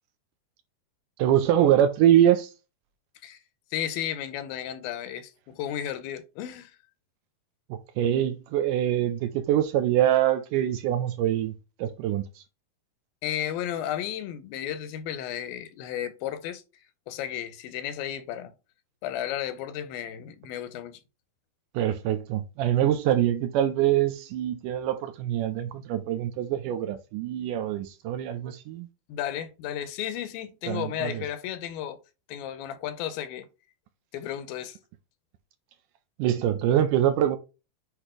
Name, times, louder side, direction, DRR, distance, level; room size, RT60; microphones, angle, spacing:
voice 1, 1.2-2.5 7.7-11.5 11.8-12.4 21.7-28.9 30.7-31.2 36.2-37.4, right 11 dB, 75° right, 2.0 m, -24 dB
voice 2, 3.7-6.8 13.2-16.6 17.1-18.5 19.0-21.0 29.1-32.0 32.3-33.5 34.1-34.8, left 10 dB, 85° left, 2.6 m, -33 dB
8.2 x 2.9 x 4.9 m
omnidirectional pair, 4.1 m